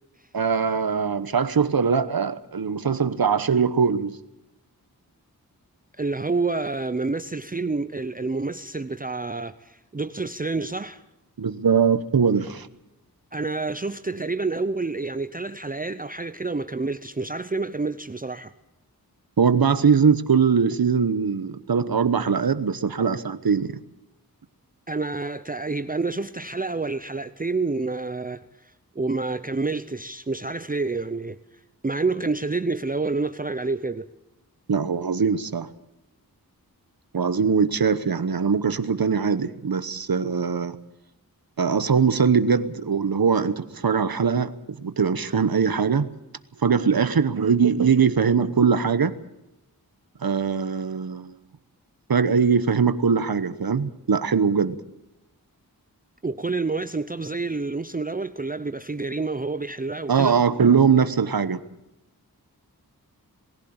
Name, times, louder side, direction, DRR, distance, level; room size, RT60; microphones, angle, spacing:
voice 1, 0.3-4.2 11.4-12.7 19.4-23.7 34.7-35.7 37.1-40.8 41.6-44.5 44.8-46.1 46.6-49.2 50.2-51.3 52.1-54.8 60.1-61.6, right 6 dB, 70° right, 1.1 m, -21 dB
voice 2, 6.0-11.0 13.3-18.5 24.9-31.4 31.8-34.0 56.2-60.4, right 3 dB, 25° right, 0.7 m, -28 dB
21.0 x 15.5 x 8.8 m
wide cardioid pair, 75°, 37 cm